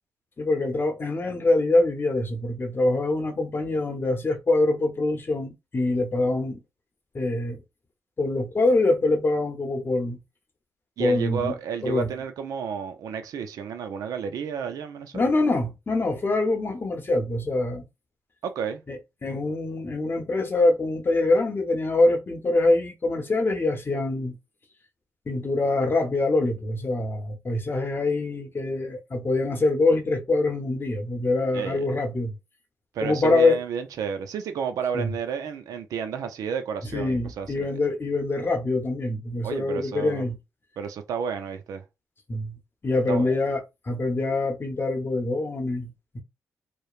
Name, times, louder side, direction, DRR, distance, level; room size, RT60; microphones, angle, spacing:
voice 1, 0.4-6.6 7.1-7.6 8.2-10.2 11.0-11.5 11.8-12.1 15.1-17.8 18.9-24.4 25.3-32.3 33.0-33.6 34.9-35.1 36.9-40.4 42.3-42.6 42.8-46.2, left 2 dB, 40° left, 0.8 m, -24 dB
voice 2, 11.0-15.2 18.4-18.8 31.5-31.8 32.9-37.7 39.4-40.2 40.8-41.8 43.1-43.4, right 7 dB, 75° right, 0.4 m, -31 dB
2.9 x 2.1 x 2.4 m
cardioid pair, 60°, 6 cm